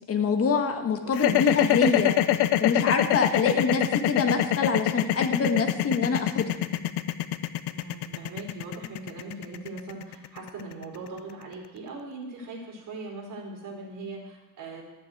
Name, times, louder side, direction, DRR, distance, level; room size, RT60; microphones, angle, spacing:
voice 1, 0.1-2.2 2.6-6.6, left 4 dB, 35° left, 5 dB, 1.5 m, -25 dB
sound 1, 1.1-11.3, left 13 dB, 80° left, 0.8 m, -24 dB
voice 2, 7.7-14.8, right 3 dB, 50° right, -1 dB, 4.5 m, -40 dB
14.0 x 7.8 x 7.9 m, 1.1 s
cardioid pair, 145°, 39 cm